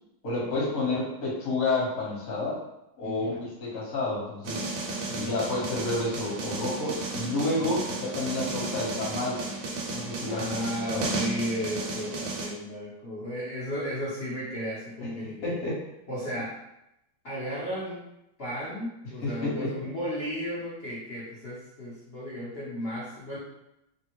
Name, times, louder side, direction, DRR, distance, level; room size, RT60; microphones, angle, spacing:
voice 1, 0.2-2.6 3.0-4.6 5.1-9.4 9.9-11.0 15.4-15.8 19.2-19.7, left 2 dB, 50° left, -6 dB, 1.3 m, -30 dB
voice 2, 3.0-3.4 5.1-5.4 7.7-7.8 10.3-15.7 16.1-16.5 17.2-18.0 18.4-23.4, equal, 65° left, -9 dB, 0.6 m, -34 dB
sound 1, 4.4-12.5, right 2 dB, 80° right, 1.4 m, -33 dB
3.4 x 2.1 x 2.9 m, 0.87 s
omnidirectional pair, 2.2 m